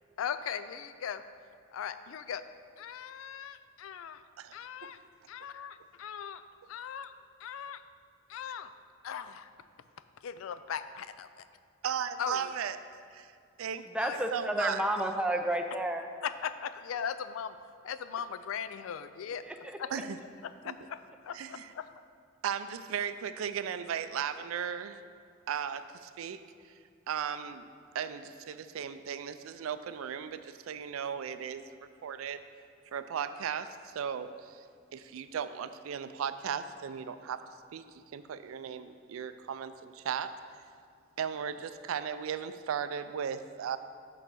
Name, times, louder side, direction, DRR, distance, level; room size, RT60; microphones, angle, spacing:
voice 1, 0.2-1.2 1.7-2.4 2.8-4.2 4.5-5.0 5.3-6.4 6.7-7.1 7.4-7.8 8.3-8.7 9.0-9.5 10.2-11.3 12.2-12.5 14.0-14.2 16.2-17.6 17.8-19.4 19.8-19.9 20.4-21.9, left 8 dB, 80° left, 12 dB, 0.3 m, -38 dB
voice 2, 11.8-12.8 13.6-13.9 14.3-14.8 19.9-20.2 20.6-20.7 21.3-21.7 22.4-25.0 25.5-26.7 27.1-27.7 27.9-31.7 32.0-32.4 32.9-34.6 34.9-37.4 37.7-40.3 41.2-43.8, right 8 dB, 85° right, 12 dB, 0.4 m, -36 dB
voice 3, 13.9-16.1 19.4-20.0, right 1 dB, 5° right, 4 dB, 0.4 m, -31 dB
6.7 x 4.1 x 6.1 m, 2.3 s
head